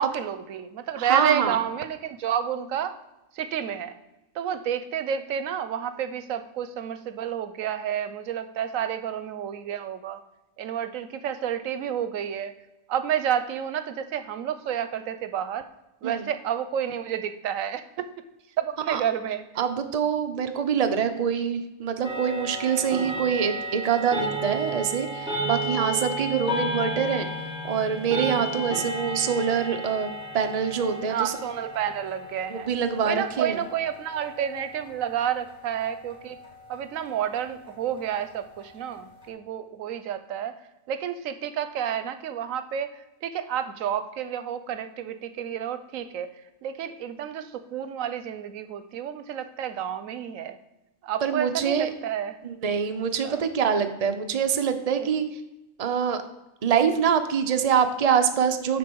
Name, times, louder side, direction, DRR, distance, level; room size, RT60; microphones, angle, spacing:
voice 1, 0.0-3.0 3.3-4.0 4.3-10.2 10.6-12.5 12.9-15.7 16.0-18.1 18.6-19.4 31.1-32.7 33.0-36.4 36.7-40.5 40.9-42.9 43.2-46.3 46.6-50.6 51.0-52.4 53.2-53.4 55.0-55.2, right 9 dB, 85° right, 10 dB, 1.1 m, -30 dB
voice 2, 1.0-1.6 16.0-16.2 18.9-19.0 19.6-27.3 27.6-31.3 32.5-33.6 51.2-51.9 52.4-55.2 55.8-56.2 56.6-58.8, right 7 dB, 35° right, 8 dB, 0.7 m, -25 dB
sound 1, 22.0-39.3, equal, 5° right, 1.9 m, -34 dB
9.5 x 3.9 x 6.2 m, 0.97 s
omnidirectional pair, 1.4 m